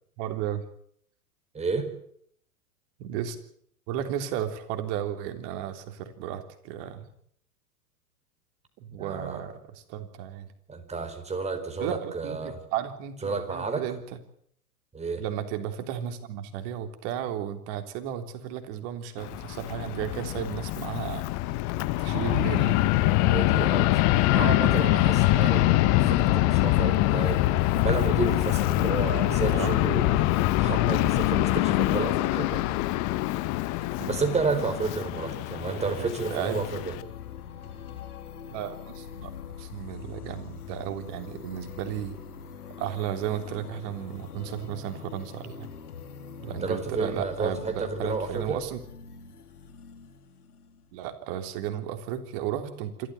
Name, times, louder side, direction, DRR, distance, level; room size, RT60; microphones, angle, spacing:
voice 1, 0.2-0.6 3.0-3.4 3.9-7.1 8.8-9.5 9.9-10.5 11.8-14.0 15.2-21.2 22.0-22.9 29.3-29.8 33.8-34.2 35.6-36.7 38.5-39.3 39.6-42.2 42.8-45.7 46.4-48.8 50.9-53.1, right 10 dB, 45° right, 8 dB, 3.5 m, -34 dB
voice 2, 1.5-1.9 9.0-9.6 10.7-12.6 13.2-13.8 14.9-15.2 23.2-27.5 27.7-32.6 34.0-37.0 46.5-48.6, right 4 dB, 15° right, 6 dB, 4.7 m, -31 dB
Fixed-wing aircraft airplane, 19.2-37.0, left 16 dB, 40° left, 1.4 m, -24 dB
sound 1, 34.9-51.1, left 7 dB, 75° left, 2.9 m, -43 dB
27.0 x 13.5 x 9.6 m, 0.67 s
figure-of-eight pair, 100°, 46 cm